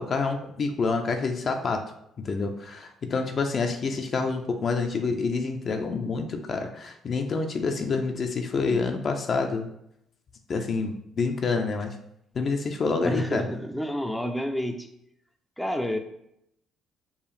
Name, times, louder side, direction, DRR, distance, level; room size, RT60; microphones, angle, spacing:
voice 1, 0.0-1.8 2.2-9.7 10.5-11.9 12.3-13.4, left 4 dB, 50° left, 5 dB, 0.5 m, -27 dB
voice 2, 13.0-14.9 15.6-16.0, equal, 5° left, 4 dB, 0.5 m, -29 dB
4.7 x 2.4 x 3.2 m, 0.75 s
supercardioid pair, 60°, 0 cm